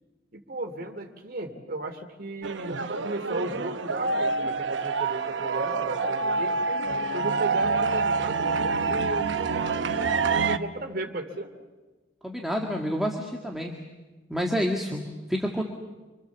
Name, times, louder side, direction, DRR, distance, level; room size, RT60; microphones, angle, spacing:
voice 1, 0.3-6.7 7.1-11.5, right 1 dB, 50° right, 5 dB, 2.8 m, -35 dB
sound 1, 2.4-10.6, right 4 dB, 65° right, 0.9 m, -27 dB
voice 2, 12.2-13.8 14.3-15.6, equal, ahead, 0 dB, 1.8 m, -28 dB
27.5 x 25.5 x 7.3 m, 1.2 s
head